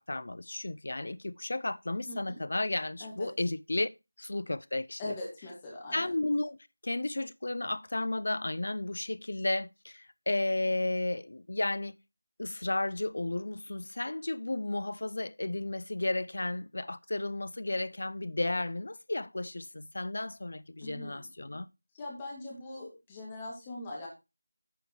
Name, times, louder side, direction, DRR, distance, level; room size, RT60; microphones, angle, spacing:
voice 1, 0.0-3.9 4.2-5.2 5.9-11.9 12.4-21.7, left 2 dB, 50° left, 0.5 m, -33 dB
voice 2, 2.1-2.4 3.0-3.3 5.0-6.1 20.8-21.2 21.9-24.1, left 2 dB, 10° left, 2.2 m, -41 dB
9.4 x 9.0 x 3.1 m
figure-of-eight pair, 175°, 0 cm